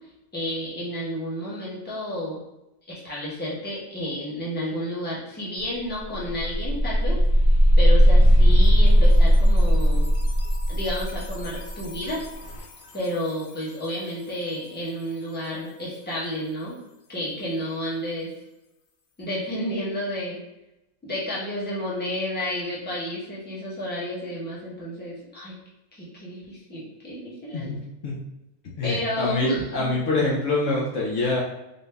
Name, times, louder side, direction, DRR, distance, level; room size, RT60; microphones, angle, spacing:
voice 1, 0.3-2.4 2.9-7.2 7.8-10.1 10.7-12.2 12.9-16.8 17.1-18.3 19.2-20.4 21.0-25.5 25.9-27.7 28.8-30.0, equal, 10° left, -7 dB, 0.9 m, -31 dB
sound 1, 5.6-5.7 6.0-12.8, equal, 85° left, 0.4 m, -18 dB
voice 2, 27.5-28.2 28.8-31.4, left 2 dB, 65° left, -4 dB, 1.0 m, -25 dB
3.8 x 2.6 x 3.4 m, 0.92 s
omnidirectional pair, 1.5 m